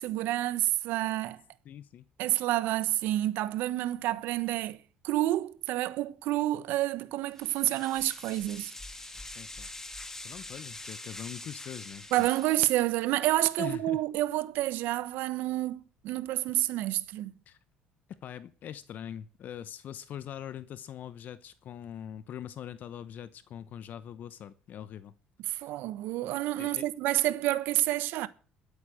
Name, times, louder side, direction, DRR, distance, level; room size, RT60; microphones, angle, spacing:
voice 1, 0.0-1.4 2.2-4.8 5.0-8.7 12.1-17.3 25.5-28.3, right 15 dB, 75° right, 1.1 m, -29 dB
voice 2, 1.6-2.0 9.3-9.7 10.2-12.3 13.6-14.0 17.5-17.6 18.1-25.1 25.5-25.7 26.6-26.8, left 10 dB, 55° left, 1.0 m, -42 dB
sound 1, 7.4-12.9, left 2 dB, 15° left, 1.9 m, -44 dB
13.0 x 8.7 x 7.7 m
cardioid pair, 100°, 3 cm